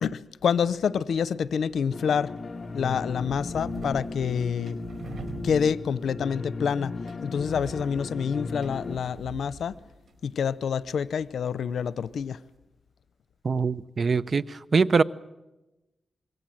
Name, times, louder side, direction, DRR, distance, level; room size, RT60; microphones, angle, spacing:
voice 1, 0.0-2.3 2.7-4.8 5.4-6.9 7.2-9.7 10.2-12.4, left 7 dB, 90° left, 0.8 m, -27 dB
sound 1, 1.5-12.6, right 3 dB, 75° right, 4.8 m, -46 dB
sound 2, 1.9-9.0, left 3 dB, 40° left, 1.1 m, -36 dB
voice 2, 13.4-14.4 14.7-15.0, right 4 dB, 50° right, 0.9 m, -22 dB
26.0 x 23.0 x 7.8 m
cardioid pair, 80°, 0 cm